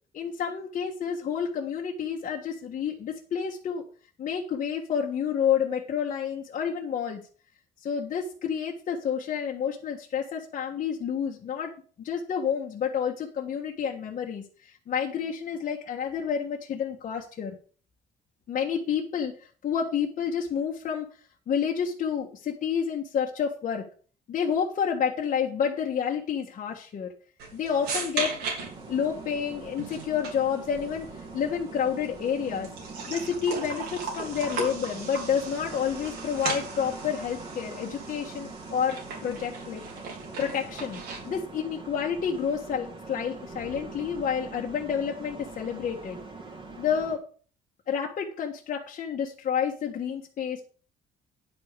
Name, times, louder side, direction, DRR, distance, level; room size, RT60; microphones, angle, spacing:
voice 1, 0.1-3.8 4.2-7.2 7.8-11.7 12.0-14.4 14.9-17.5 18.5-19.3 19.6-21.1 21.5-23.8 24.3-27.1 27.5-28.3 28.9-32.7 33.1-39.8 40.4-46.2 46.8-47.2 47.9-50.6, left 7 dB, 50° left, -1 dB, 1.5 m, -29 dB
sound 1, 27.4-41.4, right 4 dB, 80° right, 3.8 m, -38 dB
sound 2, 28.6-47.2, right 3 dB, 30° right, 2.5 m, -43 dB
10.0 x 4.9 x 6.7 m, 0.41 s
cardioid pair, 110°, 17 cm